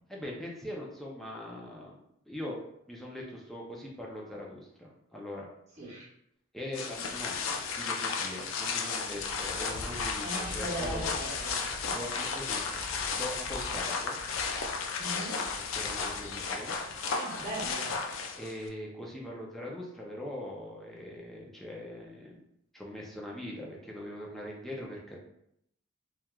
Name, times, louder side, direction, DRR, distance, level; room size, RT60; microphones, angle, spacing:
voice 1, 0.1-1.9 2.3-2.6 2.9-5.5 6.5-11.1 11.9-12.7 13.1-14.2 15.7-16.7 18.4-22.4 22.7-25.2, left 1 dB, ahead, -3 dB, 0.4 m, -41 dB
sound 1, 6.7-18.7, left 5 dB, 80° left, 0.4 m, -34 dB
voice 2, 10.2-11.6 11.9-12.0 15.0-15.4 17.2-17.9, right 1 dB, 35° right, -6 dB, 1.0 m, -38 dB
3.0 x 2.3 x 2.2 m, 0.74 s
head